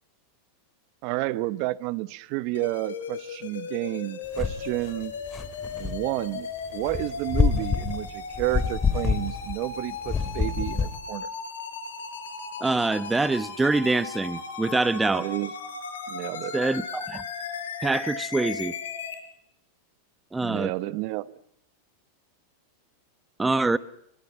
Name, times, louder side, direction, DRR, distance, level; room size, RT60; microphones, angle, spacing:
voice 1, 1.0-5.1 5.8-11.3 15.1-15.5 16.1-16.5 20.4-21.4, right 19 dB, 55° right, 1.0 m, -30 dB
sound 1, 2.5-19.1, left 5 dB, 85° left, 6.1 m, -37 dB
sound 2, 4.4-4.7 5.0-6.1 6.9-9.7 10.1-11.0, left 5 dB, 20° left, 2.7 m, -26 dB
voice 2, 12.6-15.3 16.5-17.2 17.8-18.7 20.3-20.7 23.4-23.8, right 3 dB, 10° right, 1.0 m, -25 dB
23.5 x 22.0 x 8.1 m
hypercardioid pair, 115°, 0 cm